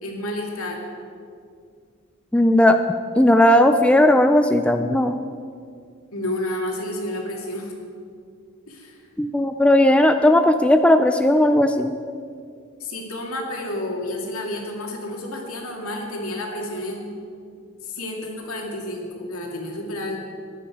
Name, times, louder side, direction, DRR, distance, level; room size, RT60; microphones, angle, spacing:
voice 1, 0.0-0.8 6.1-7.7 8.7-9.0 12.8-17.1 17.8-20.2, left 1 dB, 85° left, 0 dB, 2.4 m, -30 dB
voice 2, 2.3-2.8 3.2-5.2 9.2-11.9, left 1 dB, 5° left, 7 dB, 0.4 m, -16 dB
14.5 x 11.0 x 4.9 m, 2.3 s
head